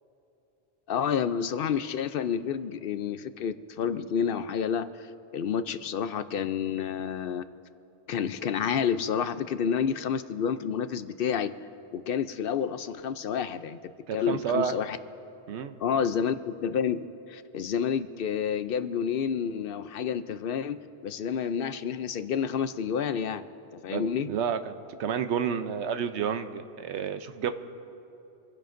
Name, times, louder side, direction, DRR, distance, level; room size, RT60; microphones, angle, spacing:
voice 1, 0.9-7.4 8.1-11.5 11.9-13.8 14.1-15.0 15.8-23.5 23.7-24.3, left 7 dB, 65° left, 12 dB, 0.7 m, -29 dB
voice 2, 14.1-14.8 15.5-15.8 23.9-27.5, right 7 dB, 90° right, 9 dB, 1.0 m, -30 dB
25.5 x 16.0 x 2.6 m, 2.9 s
omnidirectional pair, 1.1 m